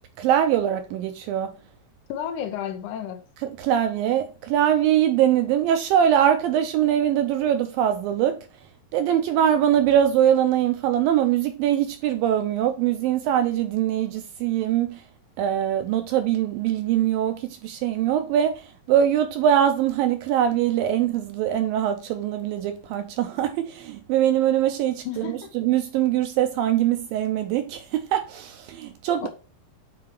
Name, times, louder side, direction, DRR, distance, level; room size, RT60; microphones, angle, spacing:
voice 1, 0.2-1.5 3.4-8.4 8.9-15.0 15.4-29.3, right 10 dB, 80° right, 2.0 m, -22 dB
voice 2, 2.1-3.2 25.1-25.5 29.2-29.3, left 9 dB, 80° left, 1.8 m, -32 dB
9.7 x 4.3 x 3.1 m
omnidirectional pair, 4.7 m